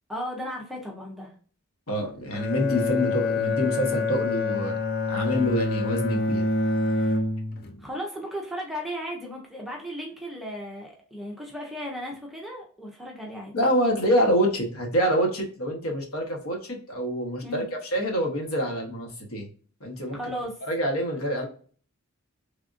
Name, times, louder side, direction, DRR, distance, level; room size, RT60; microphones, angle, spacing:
voice 1, 0.1-1.3 6.9-7.2 7.8-13.5 17.4-17.7 20.1-20.6, equal, ahead, -2 dB, 0.6 m, -35 dB
voice 2, 1.9-4.8 5.1-6.5 13.5-17.6 17.9-19.5 19.8-20.2 20.7-21.5, equal, 80° left, 1 dB, 1.0 m, -26 dB
Bowed string instrument, 2.3-7.8, left 3 dB, 45° left, 0.4 m, -26 dB
3.3 x 2.5 x 2.5 m, 0.42 s
head